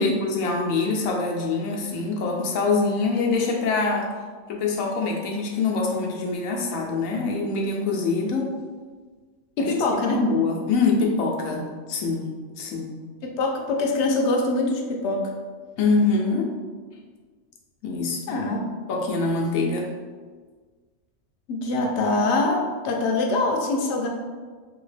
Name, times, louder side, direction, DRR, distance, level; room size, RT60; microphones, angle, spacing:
voice 1, 0.0-4.1 4.5-8.5 9.6-12.9 15.8-16.5 17.8-19.9, left 3 dB, 85° left, 0 dB, 1.0 m, -25 dB
voice 2, 9.6-10.2 13.2-15.3 18.3-18.7 21.5-24.1, left 2 dB, 65° left, 1 dB, 0.8 m, -24 dB
2.8 x 2.8 x 3.2 m, 1.5 s
omnidirectional pair, 1.4 m